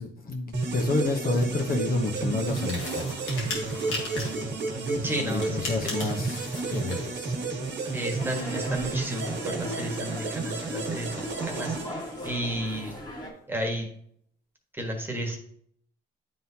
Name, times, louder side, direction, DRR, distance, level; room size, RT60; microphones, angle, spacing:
voice 1, 0.0-3.3 5.2-7.4, left 3 dB, 45° left, 2 dB, 1.0 m, -30 dB
sound 1, 0.5-12.6, right 3 dB, 65° right, 1.5 m, -32 dB
sound 2, 2.4-4.5 5.3-7.1, left 3 dB, 85° left, 1.8 m, -37 dB
voice 2, 4.7-6.0 7.9-11.7 12.2-12.9 13.5-13.9 14.7-15.4, right 1 dB, 10° right, 2 dB, 1.4 m, -32 dB
sound 3, 8.2-13.3, left 1 dB, 20° left, 1.7 m, -40 dB
9.3 x 3.8 x 2.8 m, 0.67 s
cardioid pair, 90°, 20 cm